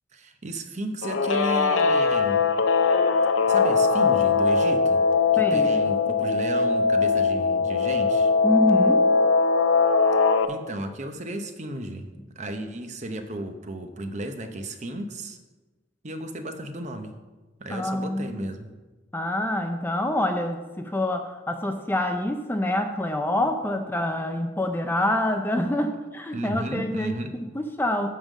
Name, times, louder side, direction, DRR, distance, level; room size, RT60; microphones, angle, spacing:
voice 1, 0.1-2.5 3.5-5.0 5.3-8.3 10.4-12.1 12.4-15.4 16.0-17.1 17.6-18.7 26.3-27.3, right 1 dB, 40° right, 7 dB, 0.7 m, -34 dB
Guitar, 1.0-10.5, left 4 dB, 90° left, 0.6 m, -21 dB
voice 2, 5.4-5.7 8.4-9.0 17.7-18.5 19.1-28.1, left 1 dB, 10° left, 6 dB, 0.5 m, -26 dB
10.5 x 3.8 x 7.3 m, 1.2 s
head